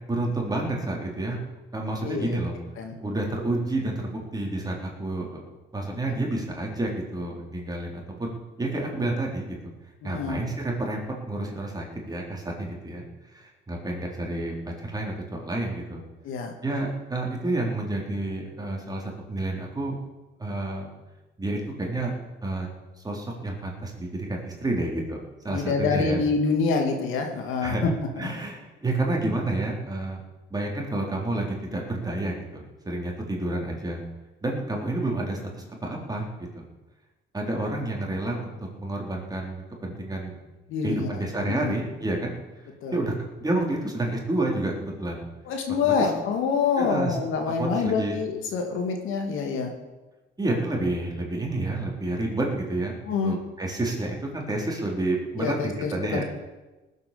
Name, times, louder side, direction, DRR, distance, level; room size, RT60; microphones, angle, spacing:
voice 1, 0.1-1.4 1.7-2.5 3.0-5.4 5.7-9.7 10.0-16.0 16.6-20.0 20.4-20.9 21.4-22.1 22.4-22.7 23.0-25.2 25.4-26.2 27.6-27.9 28.2-30.2 30.5-34.0 34.4-36.2 36.5-36.7 37.3-40.4 40.8-42.3 42.9-43.1 43.4-45.3 45.8-46.1 46.8-47.2 47.6-48.2 50.4-52.9 53.2-56.2, right 2 dB, 20° right, -1 dB, 4.0 m, -29 dB
voice 2, 2.0-2.4 2.8-3.0 10.0-10.4 16.2-16.5 25.5-27.9 28.2-28.3 40.7-41.2 41.5-41.8 42.8-43.0 45.4-49.7 53.1-53.3 55.4-56.2, left 5 dB, 90° left, 3 dB, 2.4 m, -26 dB
19.0 x 8.1 x 6.9 m, 1.1 s
cardioid pair, 90°, 20 cm